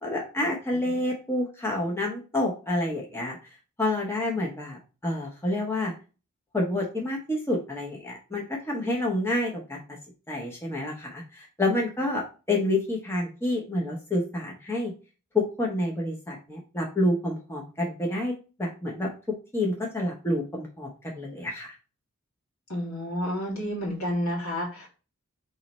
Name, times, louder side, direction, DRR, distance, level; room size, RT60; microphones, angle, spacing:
voice 1, 0.0-3.4 3.8-5.9 6.5-9.8 10.3-14.9 15.3-18.3 18.6-19.1 19.5-21.7, left 1 dB, 10° left, -1 dB, 0.7 m, -28 dB
voice 2, 22.7-24.9, equal, 75° left, -2 dB, 1.9 m, -30 dB
4.0 x 3.1 x 4.1 m, 0.34 s
head